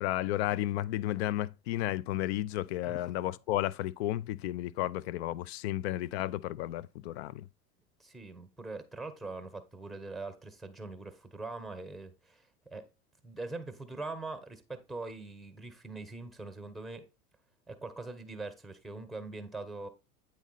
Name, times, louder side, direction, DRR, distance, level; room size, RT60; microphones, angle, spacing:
voice 1, 0.0-7.4, left 14 dB, 50° left, 0.5 m, -33 dB
voice 2, 8.0-12.9 13.2-17.1 17.7-19.9, right 3 dB, ahead, 1.0 m, -42 dB
9.0 x 4.2 x 4.0 m
figure-of-eight pair, 80°, 44 cm